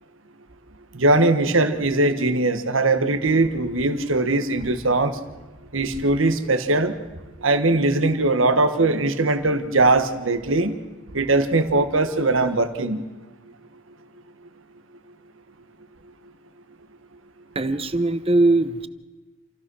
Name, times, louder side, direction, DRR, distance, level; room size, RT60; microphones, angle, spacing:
voice 1, 0.9-5.2 5.7-6.9 7.4-10.7 11.1-13.0, right 2 dB, 85° right, 10 dB, 1.4 m, -20 dB
voice 2, 17.6-18.9, right 2 dB, 30° right, 13 dB, 0.8 m, -20 dB
28.0 x 15.5 x 6.3 m, 1.2 s
head